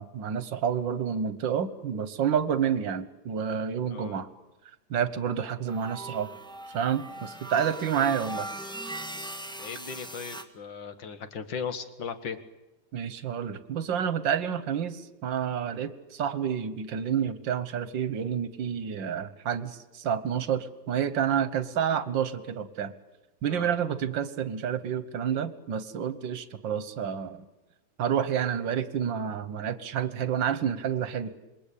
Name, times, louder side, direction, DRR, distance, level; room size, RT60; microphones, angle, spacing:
voice 1, 0.0-4.3 4.9-6.3 6.7-8.5 12.9-22.9 23.4-27.5 28.0-31.3, right 8 dB, 85° right, 13 dB, 1.9 m, -29 dB
sound 1, 5.7-10.4, right 2 dB, 5° left, 1.4 m, -39 dB
voice 2, 9.6-12.4 23.5-23.7, left 6 dB, 90° left, 9 dB, 2.2 m, -37 dB
27.0 x 21.5 x 8.5 m, 1.0 s
omnidirectional pair, 2.0 m